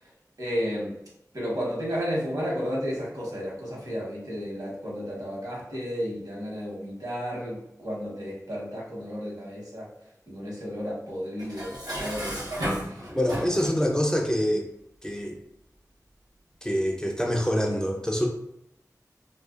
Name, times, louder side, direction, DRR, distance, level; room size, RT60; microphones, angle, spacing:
voice 1, 0.4-0.9 1.3-9.9 10.3-12.5 12.8-13.1, equal, 70° right, -5 dB, 1.1 m, -32 dB
Dishes pots and pans, 11.4-13.9, equal, 90° right, 0.7 m, -33 dB
voice 2, 13.1-14.7 15.0-15.4 16.6-18.3, equal, 10° left, 1 dB, 0.3 m, -25 dB
2.4 x 2.1 x 2.4 m, 0.78 s
wide cardioid pair, 45°, 7 cm